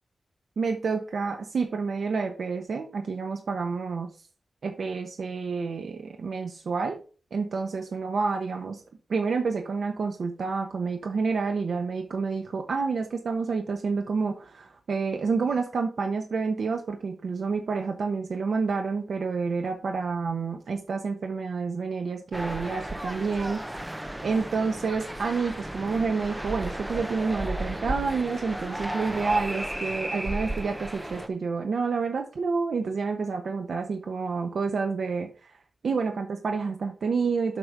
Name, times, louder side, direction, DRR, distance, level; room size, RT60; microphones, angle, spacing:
voice 1, 0.6-4.1 4.6-7.0 7.3-8.8 9.1-23.6 24.2-35.6 35.8-37.6, right 4 dB, 70° right, 4 dB, 0.9 m, -29 dB
sound 1, 22.3-31.3, right 1 dB, 10° right, 0.6 m, -34 dB
7.7 x 5.2 x 4.6 m, 0.38 s
wide cardioid pair, 170°, 0 cm